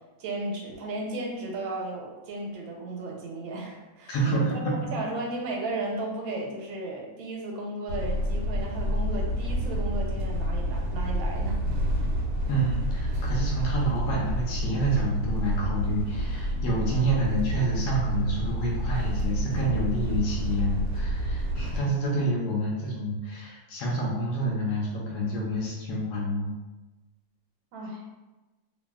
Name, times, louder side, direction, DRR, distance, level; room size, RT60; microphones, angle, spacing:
voice 1, 0.2-11.6 27.7-28.0, right 2 dB, 90° right, 0 dB, 1.4 m, -34 dB
voice 2, 4.1-4.7 12.5-26.5, right 1 dB, 70° left, -3 dB, 1.1 m, -28 dB
sound 1, 7.9-21.8, equal, 70° right, 1.0 m, -29 dB
2.8 x 2.7 x 2.2 m, 1.1 s
omnidirectional pair, 2.0 m